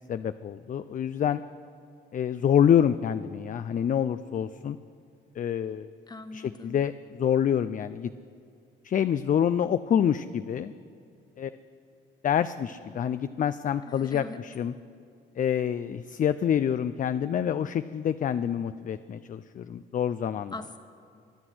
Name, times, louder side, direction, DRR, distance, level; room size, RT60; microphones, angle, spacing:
voice 1, 0.1-1.4 2.1-4.8 5.4-5.9 6.3-8.1 8.8-10.7 11.4-11.5 12.2-14.7 15.4-20.5, left 9 dB, 40° left, 12 dB, 0.4 m, -27 dB
voice 2, 6.1-6.7 13.9-14.4 20.5-20.8, left 3 dB, 20° left, 7 dB, 1.3 m, -40 dB
23.5 x 7.9 x 6.2 m, 2.5 s
cardioid pair, 90°, 20 cm